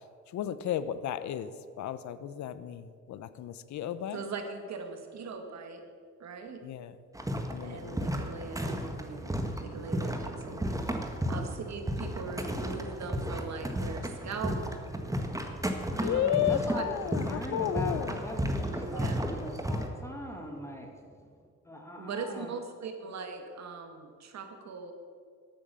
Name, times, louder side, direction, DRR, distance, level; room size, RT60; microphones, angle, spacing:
voice 1, 0.3-1.5 1.8-4.2 6.6-6.9 7.5-8.2 16.0-18.2, left 10 dB, 70° left, 14 dB, 0.7 m, -33 dB
voice 2, 4.1-5.8 6.2-6.6 7.6-9.3 9.6-10.9 11.3-14.6 15.9-16.2 16.7-16.8 18.9-19.2 22.0-24.9, right 5 dB, 60° right, 5 dB, 1.9 m, -40 dB
sound 1, 7.1-19.9, equal, 10° right, 1.5 m, -33 dB
voice 3, 15.9-21.1 21.4-22.5, equal, 10° left, 1 dB, 2.3 m, -41 dB
13.0 x 8.7 x 6.9 m, 2.1 s
cardioid pair, 90°, 30 cm